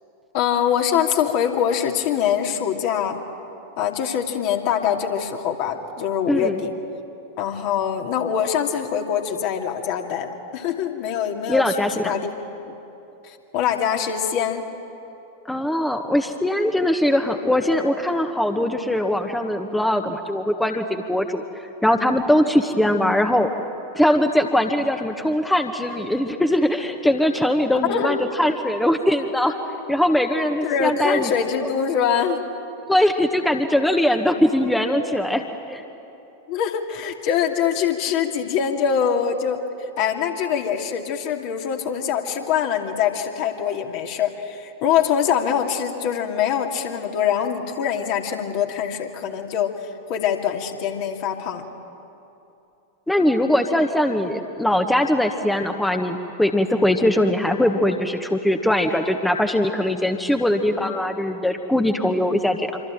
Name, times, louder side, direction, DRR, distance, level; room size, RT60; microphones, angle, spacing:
voice 1, 0.3-3.2 3.8-6.7 7.4-12.3 12.6-12.7 13.2-14.7 27.8-28.3 30.6-32.4 36.5-51.6, left 8 dB, 45° left, 3 dB, 2.5 m, -24 dB
voice 2, 6.3-6.6 11.5-12.1 15.5-21.4 21.8-23.5 23.9-29.6 29.9-31.3 32.9-35.8 53.1-62.8, left 1 dB, 5° left, 5 dB, 1.6 m, -21 dB
26.0 x 25.5 x 9.0 m, 2.9 s
figure-of-eight pair, 90°, 0 cm